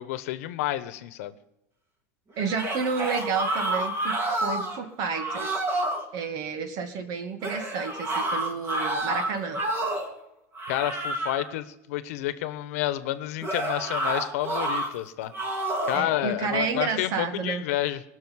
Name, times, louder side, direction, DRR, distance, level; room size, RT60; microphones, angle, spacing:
voice 1, 0.0-1.4 10.7-18.0, left 14 dB, 75° left, 14 dB, 1.2 m, -30 dB
sound 1, 2.4-4.8 5.1-6.0 7.4-10.1 10.6-11.5 13.4-14.9 15.3-16.1, right 1 dB, 30° right, 3.3 m, -29 dB
voice 2, 2.4-5.6 6.1-9.6 15.9-17.6, right 5 dB, 55° right, 8 dB, 2.4 m, -30 dB
19.0 x 6.5 x 9.7 m, 0.85 s
supercardioid pair, 115°, 8 cm